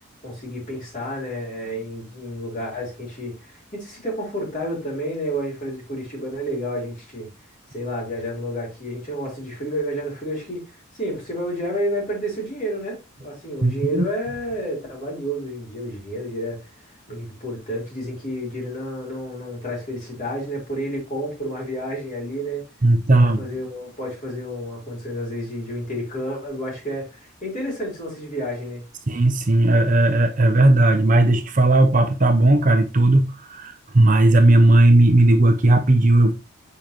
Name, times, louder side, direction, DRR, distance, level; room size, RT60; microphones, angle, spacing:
voice 1, 0.2-7.3 7.7-16.7 17.1-22.6 23.1-28.8, equal, 35° left, 3.7 m, -30 dB
voice 2, 13.6-14.1 22.8-23.4 29.1-36.3, right 2 dB, 35° right, 0.7 m, -16 dB
7.0 x 5.3 x 3.0 m
head